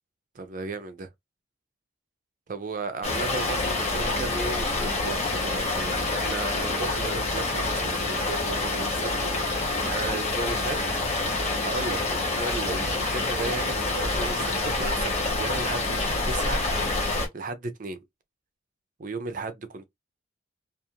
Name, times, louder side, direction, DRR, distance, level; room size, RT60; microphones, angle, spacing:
voice 1, 0.3-1.1 2.5-9.1 9.4-11.0 11.4-16.6 17.3-18.0 19.0-19.8, right 3 dB, 40° right, 0.4 m, -35 dB
sound 1, 3.0-17.3, left 2 dB, 30° left, 0.9 m, -27 dB
2.4 x 2.4 x 2.8 m
head